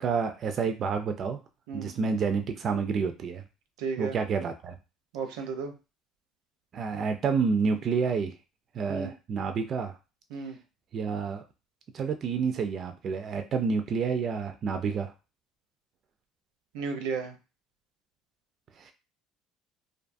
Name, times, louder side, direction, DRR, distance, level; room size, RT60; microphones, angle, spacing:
voice 1, 0.0-1.4 1.7-3.4 4.0-4.8 6.7-8.3 8.7-9.9 10.9-11.4 11.9-15.1 18.8-18.9, right 5 dB, 45° right, 7 dB, 0.3 m, -29 dB
voice 2, 3.8-4.2 5.1-5.7 8.9-9.1 10.3-10.6 16.7-17.3, right 5 dB, 90° right, 6 dB, 0.6 m, -33 dB
2.5 x 2.3 x 2.5 m, 0.30 s
cardioid pair, 110°, 0 cm